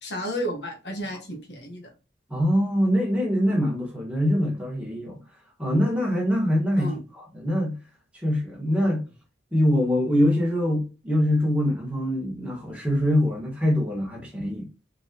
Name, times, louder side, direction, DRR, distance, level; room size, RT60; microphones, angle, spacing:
voice 1, 0.0-1.9 6.8-7.0 8.8-8.9, equal, 65° left, 1.3 m, -32 dB
voice 2, 2.3-5.2 5.6-7.8 8.1-9.0 9.5-14.7, equal, 5° right, 1.6 m, -24 dB
4.5 x 3.8 x 2.9 m
head